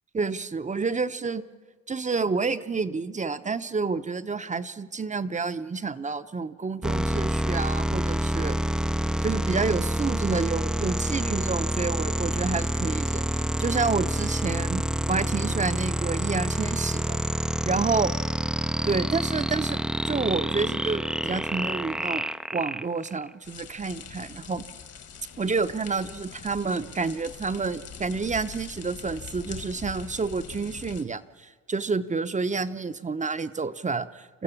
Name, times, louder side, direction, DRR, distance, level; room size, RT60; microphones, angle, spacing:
voice 1, 0.1-1.4 1.9-8.6 9.2-17.2 17.7-18.1 18.8-19.8 20.0-24.6 25.4-34.4, right 4 dB, 25° right, 12 dB, 0.8 m, -29 dB
sound 1, 6.8-23.3, equal, ahead, 0.5 m, -27 dB
sound 2, 23.4-31.0, left 7 dB, 55° left, 1.9 m, -43 dB
28.5 x 15.0 x 7.2 m, 1.5 s
cardioid pair, 90°, 30 cm